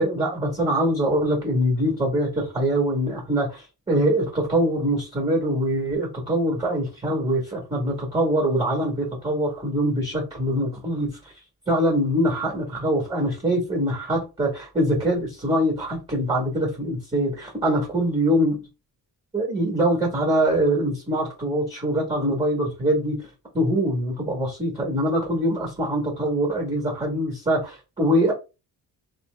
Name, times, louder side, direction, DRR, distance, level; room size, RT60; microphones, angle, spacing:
voice 1, 0.0-11.3 11.7-18.6 19.3-23.2 23.5-28.3, right 1 dB, 15° right, 0 dB, 1.2 m, -23 dB
2.8 x 2.0 x 3.2 m, 0.29 s
cardioid pair, 90°, 38 cm